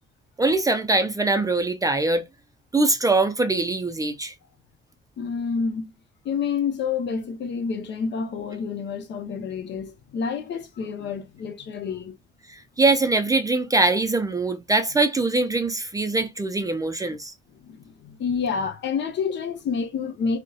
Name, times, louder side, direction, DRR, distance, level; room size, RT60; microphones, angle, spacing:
voice 1, 0.4-2.2 2.7-4.3 12.5-17.3, right 3 dB, 15° right, 0.3 m, -22 dB
voice 2, 5.2-5.9 6.2-12.2 17.5-20.4, left 5 dB, 65° left, 0.7 m, -28 dB
2.6 x 2.1 x 2.2 m
cardioid pair, 90°, 20 cm